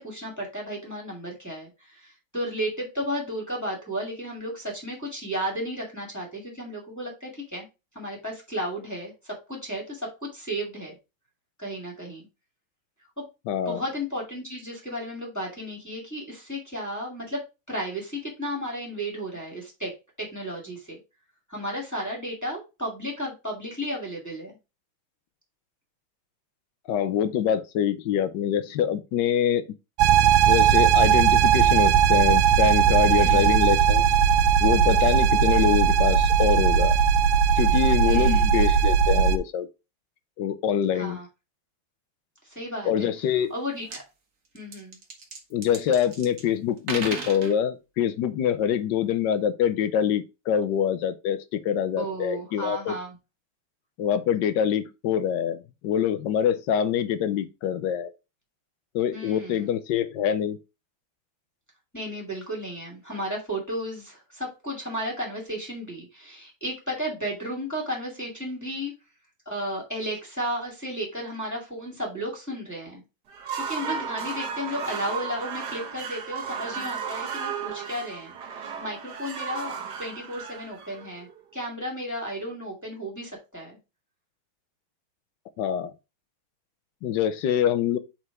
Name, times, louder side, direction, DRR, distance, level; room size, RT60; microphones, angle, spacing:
voice 1, 0.0-7.7 7.9-11.0 11.6-12.2 13.2-13.3 13.7-17.4 17.7-19.9 20.2-21.0 21.5-24.5 33.2-33.6 38.0-38.4 40.9-41.3 42.4-43.1 43.5-44.0 44.5-45.0 52.0-53.2 59.1-59.8 61.9-68.9 69.5-73.0 73.5-79.7 80.0-81.3 81.5-83.8, equal, 10° left, 2.1 m, -33 dB
voice 2, 13.5-13.8 26.9-29.6 30.5-34.0 34.6-36.9 37.6-39.7 40.4-41.2 42.8-43.5 45.5-53.0 54.0-58.1 58.9-60.6 85.6-85.9 87.0-88.0, left 9 dB, 70° left, 1.2 m, -25 dB
sound 1, 30.0-39.4, right 8 dB, 90° right, 1.5 m, -19 dB
sound 2, 43.5-43.6 43.8-44.0 44.6-46.5 46.8-47.5, right 4 dB, 45° right, 1.5 m, -36 dB
sound 3, 73.3-81.4, right 6 dB, 60° right, 1.6 m, -34 dB
5.0 x 4.4 x 4.7 m
omnidirectional pair, 2.2 m